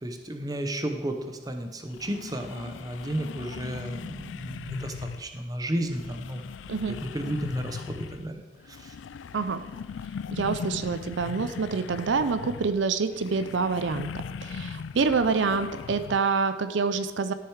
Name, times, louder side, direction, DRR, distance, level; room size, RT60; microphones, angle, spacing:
voice 1, 0.0-6.5 7.1-8.4 8.7-8.9, right 1 dB, 20° right, 5 dB, 0.8 m, -33 dB
sound 1, 1.9-5.3 5.8-8.3 8.6-16.2, left 6 dB, 75° left, 0.4 m, -39 dB
voice 2, 6.7-7.0 9.3-9.6 10.3-17.3, right 4 dB, 70° right, 11 dB, 0.5 m, -27 dB
13.0 x 6.8 x 4.7 m, 1.2 s
head